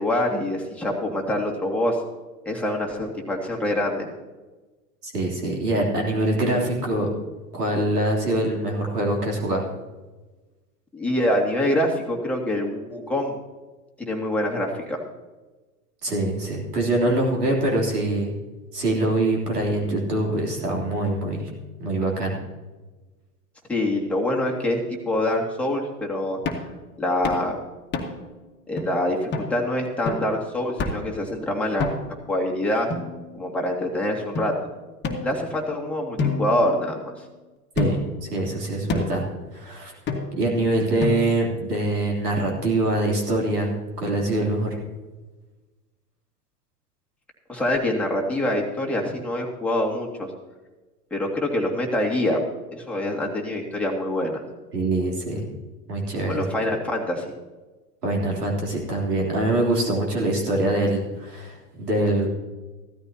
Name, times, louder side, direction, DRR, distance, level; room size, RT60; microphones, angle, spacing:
voice 1, 0.0-2.0 2.5-4.1 10.9-13.4 14.0-15.0 23.7-26.4 27.0-27.6 28.7-31.9 32.3-32.9 33.3-34.5 35.2-37.1 47.5-50.3 51.1-52.4 52.7-54.4 56.3-57.3, left 1 dB, 5° left, -2 dB, 2.2 m, -25 dB
voice 2, 5.0-7.1 7.5-9.7 16.0-18.3 18.7-21.5 21.8-22.4 37.8-39.2 39.5-39.9 40.3-44.8 54.7-55.5 55.9-56.4 58.0-62.3, right 1 dB, 80° right, -1 dB, 3.4 m, -24 dB
sound 1, 26.5-26.7 27.2-27.5 27.9-28.3 28.8-28.9 29.3-29.5 30.1-30.3 30.8-31.2 31.8-32.2 32.9-33.6 34.4-34.5 35.0-35.7 36.2-37.2 37.8-38.2 38.9-39.3 40.1-40.5 41.0-41.5, left 3 dB, 25° left, 1.7 m, -29 dB
15.5 x 13.0 x 2.9 m, 1.2 s
hypercardioid pair, 100°, 47 cm